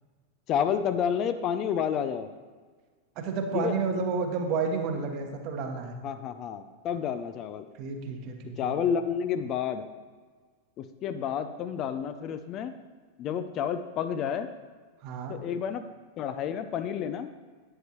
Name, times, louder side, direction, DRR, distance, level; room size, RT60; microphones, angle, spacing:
voice 1, 0.5-2.3 3.5-3.8 6.0-7.6 8.6-9.9 10.8-12.7 13.2-14.5 15.3-15.9 16.2-17.3, left 8 dB, 35° left, 10 dB, 0.5 m, -30 dB
voice 2, 3.2-6.0 7.8-8.8 15.0-15.4, right 4 dB, 40° right, 4 dB, 1.3 m, -31 dB
11.0 x 9.5 x 3.0 m, 1.4 s
figure-of-eight pair, 90°, 0 cm